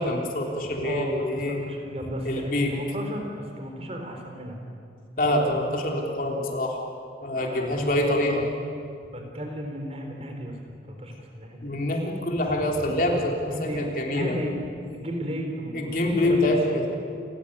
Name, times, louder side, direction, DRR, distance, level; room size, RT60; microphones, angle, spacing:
voice 1, 0.0-1.6 2.2-2.7 5.2-6.8 7.2-8.4 11.6-14.3 15.7-17.0, left 1 dB, 50° left, 0 dB, 3.4 m, -25 dB
voice 2, 0.8-4.6 5.2-5.5 7.4-8.0 9.1-10.6 10.9-11.7 13.4-14.6 14.9-16.5, equal, 35° right, 3 dB, 3.9 m, -34 dB
29.0 x 15.5 x 9.9 m, 2.5 s
head